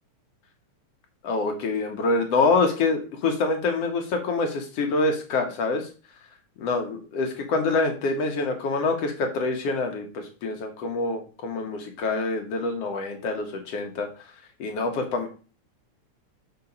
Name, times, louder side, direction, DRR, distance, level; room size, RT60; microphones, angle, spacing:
voice 1, 1.2-5.9 6.6-14.1 14.6-15.3, left 3 dB, 60° left, 3 dB, 2.2 m, -26 dB
5.8 x 5.6 x 5.4 m, 0.36 s
omnidirectional pair, 3.5 m